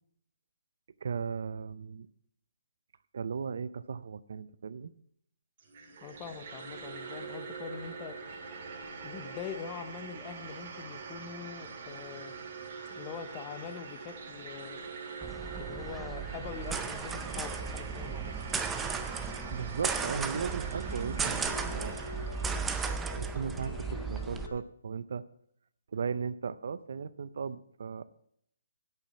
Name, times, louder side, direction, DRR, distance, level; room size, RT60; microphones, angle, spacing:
voice 1, 1.0-2.1 3.1-4.9 19.5-22.0 23.1-23.7 24.1-25.2 25.9-28.0, right 6 dB, 60° right, 16 dB, 0.5 m, -36 dB
sound 1, 5.6-22.6, right 5 dB, 40° right, 2.0 m, -44 dB
voice 2, 6.0-8.2 9.0-12.3 12.9-14.8 15.5-18.3, left 7 dB, 20° left, 10 dB, 0.8 m, -43 dB
sound 2, 15.2-24.5, right 5 dB, 5° right, 0.5 m, -35 dB
sound 3, 18.6-24.6, left 4 dB, 60° left, 0.8 m, -47 dB
8.3 x 7.0 x 8.3 m, 0.69 s
hypercardioid pair, 170°, 0 cm